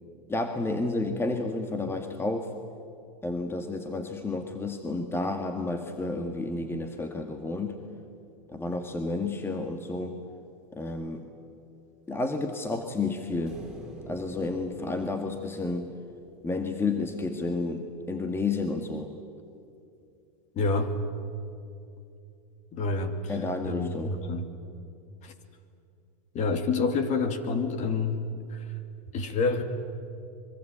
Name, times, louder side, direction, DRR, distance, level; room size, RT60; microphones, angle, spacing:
voice 1, 0.3-2.5 3.2-7.8 8.5-10.2 10.7-11.3 12.1-13.6 14.1-15.9 16.4-19.1 23.3-24.2, left 3 dB, 10° left, 6 dB, 1.8 m, -31 dB
sound 1, 13.5-16.8, right 1 dB, 5° right, 5.2 m, -48 dB
voice 2, 20.6-20.9 22.7-23.3 23.6-24.5 25.2-25.3 26.3-28.2 28.5-28.6 29.1-29.6, left 4 dB, 40° left, 8 dB, 2.7 m, -28 dB
24.5 x 23.5 x 8.7 m, 2.5 s
supercardioid pair, 120°, 20 cm